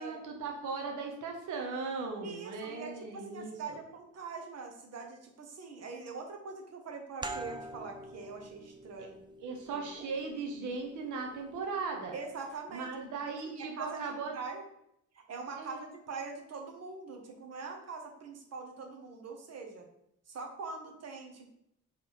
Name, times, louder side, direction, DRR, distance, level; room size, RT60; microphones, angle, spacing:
voice 1, 0.0-3.5 9.0-9.1 9.4-12.1 12.7-14.3 15.6-15.8, right 4 dB, 80° right, 2 dB, 1.4 m, -38 dB
voice 2, 2.2-9.2 9.7-10.1 12.1-12.9 13.4-14.6 15.1-15.8 16.1-19.9 20.3-21.5, right 4 dB, 55° right, 3 dB, 1.3 m, -43 dB
sound 1, 7.2-12.5, right 2 dB, 15° right, 0.6 m, -46 dB
5.0 x 3.7 x 5.1 m, 0.78 s
cardioid pair, 90°, 30 cm